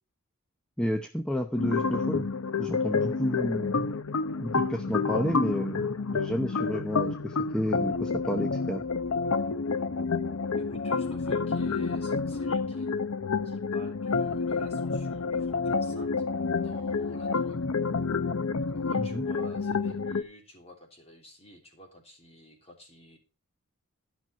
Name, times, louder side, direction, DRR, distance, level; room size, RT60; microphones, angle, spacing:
voice 1, 0.8-2.3 2.5-3.9 4.4-8.8 19.0-19.2, equal, 5° left, 6 dB, 0.7 m, -31 dB
sound 1, 1.6-20.2, left 4 dB, 65° left, 0.7 m, -29 dB
voice 2, 10.6-12.9 13.4-16.1 16.6-17.6 18.6-23.2, left 1 dB, 25° left, 2 dB, 3.3 m, -50 dB
12.5 x 6.1 x 6.0 m, 0.33 s
head